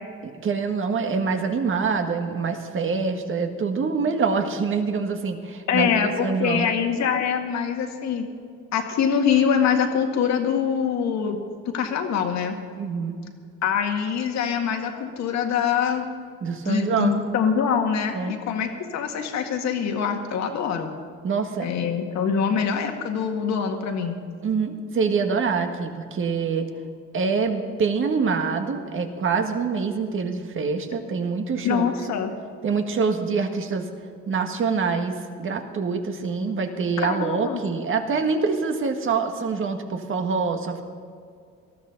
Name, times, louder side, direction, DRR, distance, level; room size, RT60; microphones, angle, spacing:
voice 1, 0.2-6.7 12.8-13.2 16.4-17.2 18.1-18.4 21.2-21.7 24.4-26.7 27.1-32.0 32.6-33.9 34.3-40.8, right 5 dB, 40° right, 5 dB, 1.7 m, -25 dB
voice 2, 5.7-8.3 8.7-12.6 13.6-16.1 16.7-20.9 21.6-24.2 31.6-32.3 37.0-37.6, left 7 dB, 60° left, 4 dB, 2.0 m, -24 dB
19.0 x 13.5 x 4.0 m, 2.2 s
cardioid pair, 95°, 30 cm